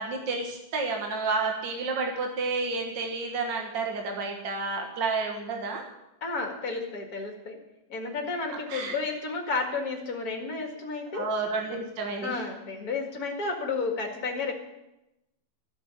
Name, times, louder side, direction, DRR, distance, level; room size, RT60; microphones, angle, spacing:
voice 1, 0.0-5.8 8.7-8.9 11.1-12.4, right 3 dB, 60° right, 2 dB, 2.2 m, -30 dB
voice 2, 6.2-7.6 7.9-11.3 12.2-14.5, left 4 dB, 50° left, 2 dB, 2.5 m, -32 dB
12.5 x 7.6 x 9.7 m, 0.92 s
omnidirectional pair, 2.2 m